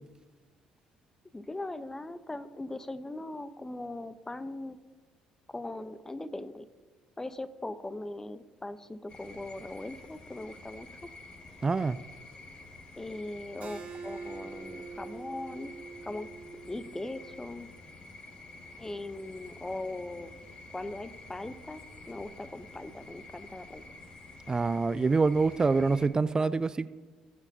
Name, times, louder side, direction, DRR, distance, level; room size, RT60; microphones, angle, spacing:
voice 1, 1.3-4.8 5.5-6.7 7.2-11.1 13.0-15.7 16.0-16.3 16.7-17.7 18.8-20.3 20.7-21.8 22.1-23.8, left 2 dB, 15° left, 13 dB, 0.8 m, -40 dB
sound 1, 9.1-26.1, left 2 dB, 40° left, 2.1 m, -50 dB
voice 2, 11.6-12.0 24.5-26.9, right 4 dB, 25° right, 16 dB, 0.4 m, -26 dB
Keyboard (musical), 13.6-18.8, right 4 dB, 55° right, 1.6 m, -46 dB
19.0 x 7.4 x 2.7 m, 1.3 s
hypercardioid pair, 60°, 3 cm